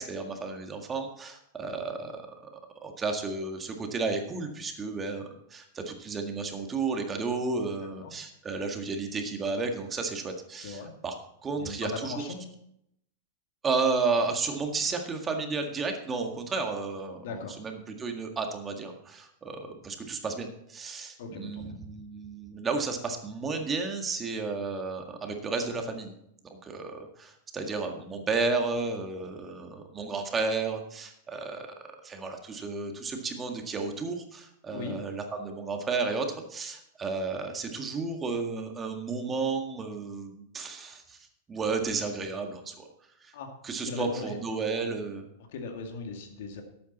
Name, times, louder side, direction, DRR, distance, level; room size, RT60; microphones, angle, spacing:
voice 1, 0.0-2.2 2.8-11.2 11.4-12.1 13.6-26.1 26.6-42.9 43.2-43.3 43.6-45.3, right 4 dB, 20° right, 4 dB, 1.8 m, -32 dB
voice 2, 11.5-12.5 17.2-17.6 21.2-21.8 34.7-35.0 43.3-43.5 43.9-44.4 45.5-46.6, left 4 dB, 70° left, 4 dB, 2.2 m, -38 dB
12.0 x 8.6 x 4.2 m, 0.75 s
hypercardioid pair, 120°, 0 cm